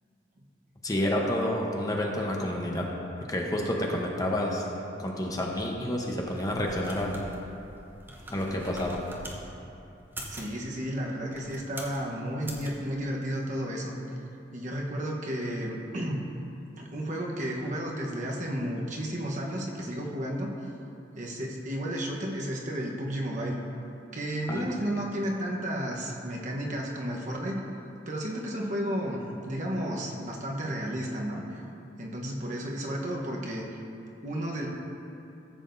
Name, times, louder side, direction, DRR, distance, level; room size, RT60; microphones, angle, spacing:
voice 1, 0.8-2.9 3.3-4.6 5.0-7.2 8.3-9.0 24.5-24.7, left 1 dB, 20° left, -1 dB, 0.8 m, -29 dB
sound 1, 6.2-9.4 10.0-10.5 11.2-12.0 12.4-12.7, right 1 dB, 10° right, 0.8 m, -43 dB
voice 2, 10.3-14.0 14.5-16.2 16.8-20.5 21.2-23.6 24.1-27.6 28.1-31.4 32.0-33.7 34.2-34.7, equal, 40° right, -1 dB, 1.0 m, -32 dB
14.5 x 7.5 x 2.6 m, 2.8 s
head